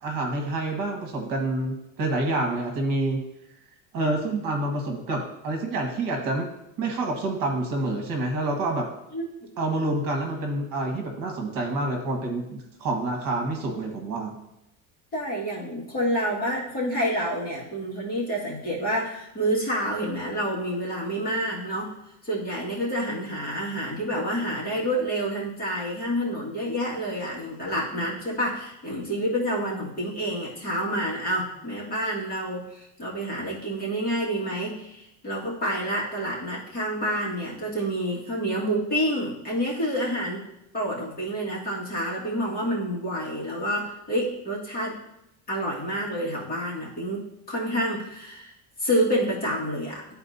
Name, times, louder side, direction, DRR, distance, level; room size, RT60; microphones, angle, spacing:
voice 1, 0.0-3.2 3.9-6.5 6.8-8.9 9.6-14.3, right 2 dB, 60° right, 2 dB, 1.6 m, -27 dB
voice 2, 15.1-21.9 22.2-40.4 40.7-45.0 45.5-48.5 48.8-50.1, equal, 25° left, -6 dB, 2.0 m, -28 dB
12.5 x 4.3 x 2.7 m, 0.84 s
cardioid pair, 155°, 39 cm